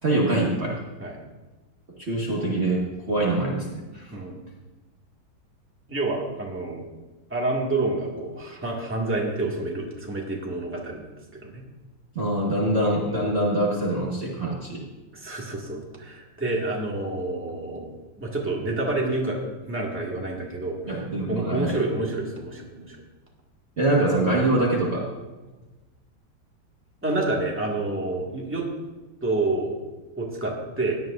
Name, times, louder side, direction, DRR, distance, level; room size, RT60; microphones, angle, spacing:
voice 1, 0.0-0.8 2.0-4.2 12.1-14.8 20.9-21.8 23.8-25.1, right 1 dB, 35° right, -4 dB, 1.7 m, -24 dB
voice 2, 5.9-6.9 7.3-11.6 15.1-17.9 18.2-20.8 21.3-23.0 27.0-28.6 29.2-29.8 30.2-30.9, right 2 dB, 5° right, -3 dB, 1.8 m, -28 dB
17.0 x 11.0 x 2.6 m, 1.2 s
omnidirectional pair, 2.1 m